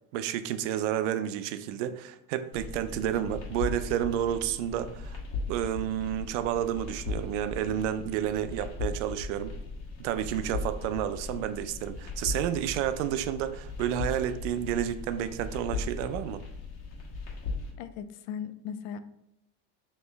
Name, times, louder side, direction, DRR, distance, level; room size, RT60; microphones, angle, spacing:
voice 1, 0.1-5.2 5.5-9.5 10.0-16.4, right 10 dB, 80° right, 11 dB, 0.5 m, -30 dB
sound 1, 2.5-17.7, left 3 dB, 45° left, 1.4 m, -38 dB
voice 2, 17.8-19.0, left 8 dB, 70° left, 12 dB, 0.5 m, -38 dB
4.3 x 3.0 x 3.3 m, 0.80 s
supercardioid pair, 130°, 36 cm